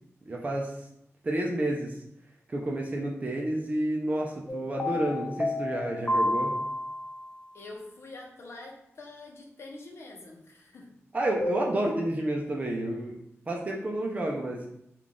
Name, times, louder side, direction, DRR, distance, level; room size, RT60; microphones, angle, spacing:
voice 1, 0.3-0.7 1.2-2.0 2.5-6.5 11.1-13.2 13.5-14.7, right 1 dB, 30° right, -1 dB, 0.5 m, -30 dB
sound 1, 4.5-7.2 11.4-11.9, left 1 dB, 25° left, 0.4 m, -30 dB
voice 2, 7.5-11.0, left 2 dB, 60° left, 0 dB, 0.7 m, -45 dB
3.7 x 2.4 x 3.6 m, 0.77 s
wide cardioid pair, 145°, 5 cm